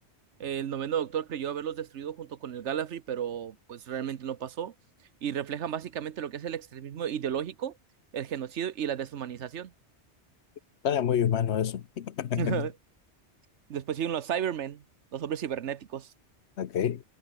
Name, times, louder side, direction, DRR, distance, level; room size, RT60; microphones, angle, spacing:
voice 1, 0.4-4.7 5.2-7.7 8.1-9.7 12.4-12.7 13.7-14.8 15.1-16.1, right 9 dB, 80° right, 1.2 m, -33 dB
voice 2, 10.8-12.7 16.6-17.0, left 9 dB, 70° left, 1.1 m, -28 dB
omnidirectional pair, 1.2 m